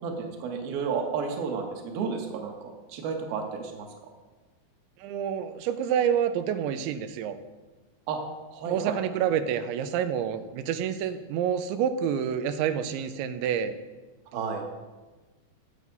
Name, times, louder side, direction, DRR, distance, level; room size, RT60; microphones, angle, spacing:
voice 1, 0.0-2.5 2.9-3.9 8.1-8.2 8.5-9.0 14.3-14.7, right 5 dB, 60° right, 2 dB, 3.4 m, -31 dB
voice 2, 5.0-7.4 8.7-13.7, right 8 dB, 90° right, 10 dB, 3.2 m, -28 dB
22.5 x 8.6 x 5.4 m, 1.2 s
omnidirectional pair, 5.1 m